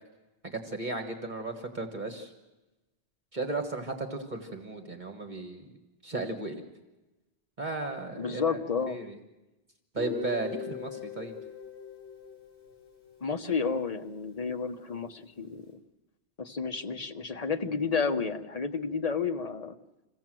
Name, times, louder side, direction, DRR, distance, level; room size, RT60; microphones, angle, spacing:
voice 1, 0.4-2.3 3.3-5.7 6.0-6.6 7.6-8.6 8.9-9.2 9.9-11.3, right 3 dB, 45° right, 3 dB, 1.7 m, -35 dB
voice 2, 8.2-9.0 13.2-15.8 16.4-19.7, left 5 dB, 35° left, 6 dB, 1.1 m, -31 dB
Guitar, 10.0-13.8, left 6 dB, 60° left, 5.4 m, -41 dB
27.0 x 16.5 x 7.6 m, 1.1 s
omnidirectional pair, 1.1 m